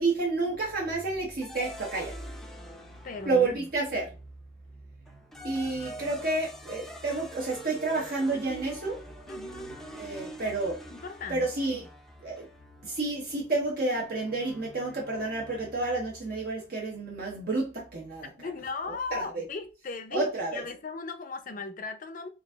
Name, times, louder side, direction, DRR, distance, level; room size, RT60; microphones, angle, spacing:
voice 1, 0.0-2.1 3.3-4.1 5.4-9.0 10.0-10.8 11.3-11.9 12.2-12.5 12.8-18.3 19.1-19.4 20.1-20.6, right 3 dB, 60° right, 0.9 m, -30 dB
sound 1, 1.4-4.0 5.1-16.2, equal, ahead, 0.5 m, -46 dB
voice 2, 3.0-3.7 9.3-9.8 10.9-11.5 18.4-22.3, left 3 dB, 50° left, 0.5 m, -37 dB
3.9 x 2.5 x 3.4 m
head